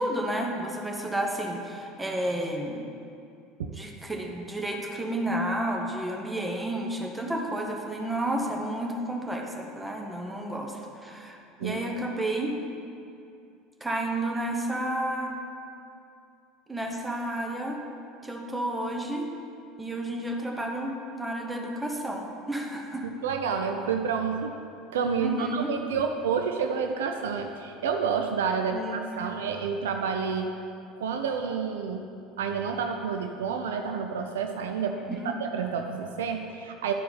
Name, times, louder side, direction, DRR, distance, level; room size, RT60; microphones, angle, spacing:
voice 1, 0.0-2.9 3.7-12.6 13.8-15.4 16.7-17.8 18.2-19.3 19.8-23.0 25.2-25.7 28.7-29.3 35.1-35.4, right 1 dB, 10° right, 1 dB, 1.0 m, -31 dB
voice 2, 23.2-24.5 24.9-30.5 31.0-32.0 32.4-36.9, right 6 dB, 65° right, 5 dB, 0.4 m, -29 dB
10.5 x 4.6 x 4.0 m, 2.6 s
figure-of-eight pair, 70°, 0 cm